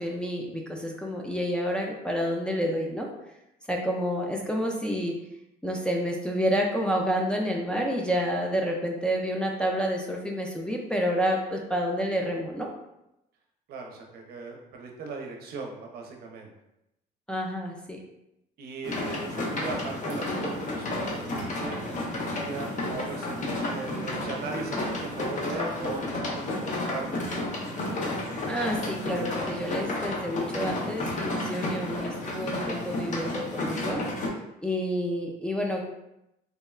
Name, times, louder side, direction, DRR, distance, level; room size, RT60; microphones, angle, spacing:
voice 1, 0.0-3.1 3.7-5.2 5.6-12.7 17.3-18.0 28.5-34.0 34.6-35.8, equal, 5° left, -1 dB, 0.4 m, -29 dB
voice 2, 13.7-16.5 18.6-27.4, right 4 dB, 65° right, 1 dB, 0.6 m, -38 dB
sound 1, 18.8-34.3, left 1 dB, 50° left, 0.6 m, -32 dB
3.6 x 2.1 x 2.3 m, 0.87 s
cardioid pair, 110°, 17 cm